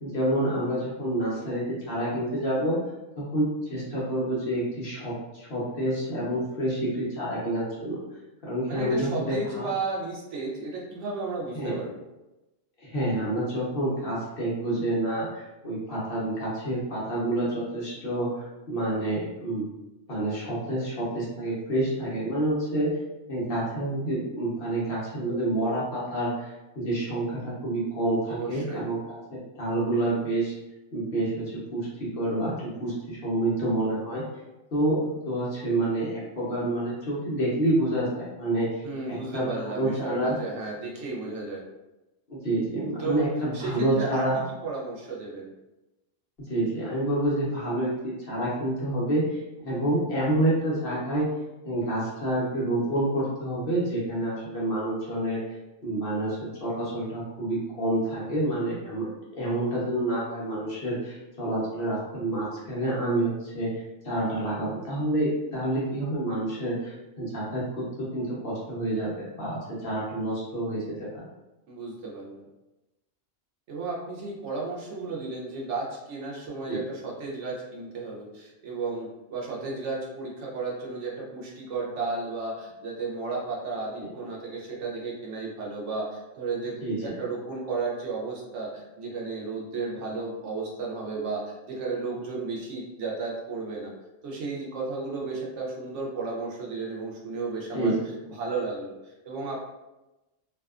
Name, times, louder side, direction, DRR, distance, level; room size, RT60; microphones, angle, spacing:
voice 1, 0.0-2.8 3.2-8.0 8.4-9.7 11.5-11.7 12.8-19.7 20.1-22.9 23.3-29.0 29.3-30.5 30.9-34.2 34.7-40.3 42.3-44.4 46.5-51.3 51.6-55.4 55.8-59.1 59.4-63.7 64.0-71.2 76.7-76.8 86.8-87.1 97.7-97.9, right 1 dB, 55° left, -6 dB, 0.9 m, -28 dB
voice 2, 8.7-12.0 28.3-28.9 38.8-41.6 43.0-44.3 44.6-45.5 71.7-72.4 73.7-93.9 94.2-97.9 98.3-99.7, right 3 dB, 70° right, -3 dB, 0.9 m, -33 dB
2.7 x 2.2 x 2.3 m, 1.0 s
omnidirectional pair, 1.3 m